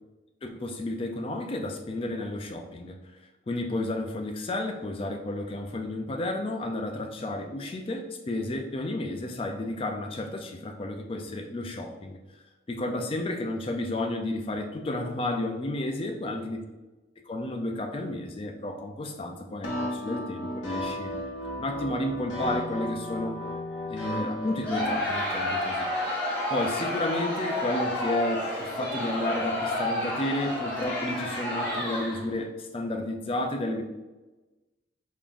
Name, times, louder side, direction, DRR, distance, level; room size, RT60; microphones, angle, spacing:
voice 1, 0.4-3.2 3.5-12.4 12.7-16.6 17.3-21.1 21.6-23.5 23.9-25.9 26.5-33.8, left 1 dB, 30° left, 4 dB, 0.3 m, -32 dB
sound 1, 19.6-25.0, left 1 dB, 80° left, 0.7 m, -34 dB
Crowd, 24.6-32.3, left 1 dB, 10° left, 1.5 m, -30 dB
3.6 x 3.4 x 2.5 m, 1.1 s
head